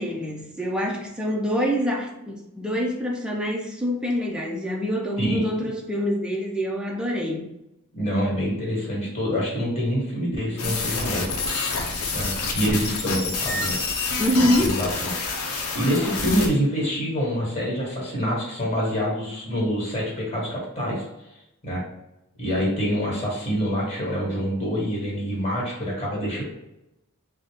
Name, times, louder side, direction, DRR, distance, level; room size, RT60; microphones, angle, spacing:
voice 1, 0.0-7.5 14.2-14.7, equal, 5° right, -1 dB, 0.4 m, -25 dB
voice 2, 5.2-5.7 7.9-11.2 12.1-13.8 14.3-21.0 21.6-21.8 22.4-26.4, equal, 30° left, -4 dB, 1.5 m, -26 dB
sound 1, 10.6-16.5, left 4 dB, 80° left, 0.7 m, -28 dB
3.9 x 2.1 x 3.5 m, 0.88 s
head